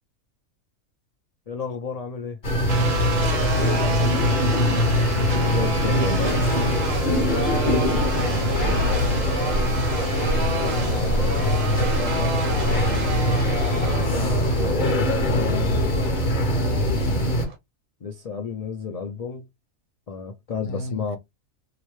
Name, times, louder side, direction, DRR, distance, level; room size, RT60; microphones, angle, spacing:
voice 1, 1.5-2.4 5.3-6.6 8.5-9.2 13.6-16.5 18.0-19.4 20.1-21.2, left 5 dB, 90° left, 0.3 m, -32 dB
sound 1, 2.4-17.5, left 1 dB, 40° left, 1.0 m, -22 dB
sound 2, 2.7-17.5, right 4 dB, 70° right, 1.3 m, -31 dB
voice 2, 3.2-5.0 7.1-7.8 10.3-13.3 20.6-21.0, left 4 dB, 65° left, 1.1 m, -31 dB
3.1 x 2.9 x 3.1 m
omnidirectional pair, 1.4 m